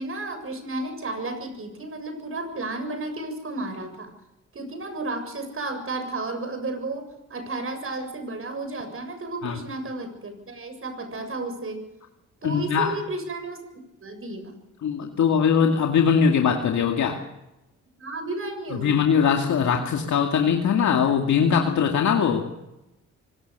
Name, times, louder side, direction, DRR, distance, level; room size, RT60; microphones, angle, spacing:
voice 1, 0.0-4.1 4.5-11.8 12.4-14.6 18.0-19.0, right 2 dB, 45° right, 8 dB, 7.2 m, -33 dB
voice 2, 12.4-13.0 14.8-17.2 18.8-22.4, left 7 dB, 75° left, 2 dB, 2.4 m, -21 dB
24.5 x 19.0 x 6.8 m, 0.94 s
cardioid pair, 65°, 30 cm